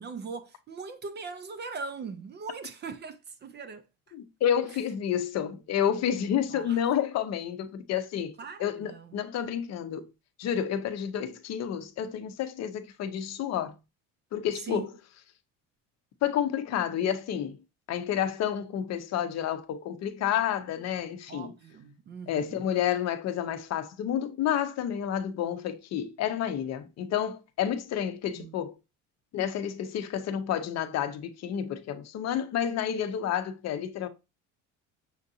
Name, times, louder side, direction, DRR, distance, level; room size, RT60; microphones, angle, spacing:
voice 1, 0.0-3.8 6.5-6.8 8.4-9.2 14.5-14.9 21.3-22.7 28.3-28.6, right 5 dB, 30° right, 0.4 m, -40 dB
voice 2, 4.1-10.1 10.4-13.8 14.3-14.9 16.2-17.6 17.9-21.5 22.3-28.7 29.3-34.1, left 9 dB, 50° left, 0.6 m, -30 dB
6.5 x 2.5 x 2.7 m
cardioid pair, 120°, 35 cm